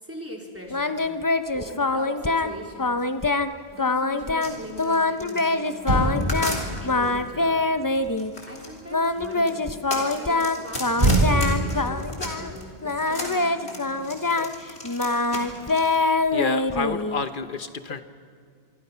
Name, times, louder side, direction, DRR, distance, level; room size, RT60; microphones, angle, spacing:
voice 1, 0.0-1.0 1.5-2.9 3.7-7.7 8.4-9.6 9.9-14.1, equal, 15° right, -1 dB, 3.7 m, -41 dB
Singing, 0.7-2.5 2.8-3.5 3.8-4.5 4.8-6.6 6.8-8.3 8.9-12.5 12.8-17.2, left 3 dB, 20° left, 0.7 m, -24 dB
sound 1, 4.4-7.1 8.0-12.6 12.9-16.0, left 1 dB, 85° left, 3.9 m, -35 dB
Motor vehicle (road), 5.4-5.5 5.8-9.3 10.9-13.5 13.8-14.1, right 1 dB, 45° right, 5.1 m, -27 dB
voice 2, 15.7-18.0, left 4 dB, 55° left, 10 dB, 1.1 m, -31 dB
26.0 x 24.5 x 5.7 m, 2.1 s
omnidirectional pair, 1.1 m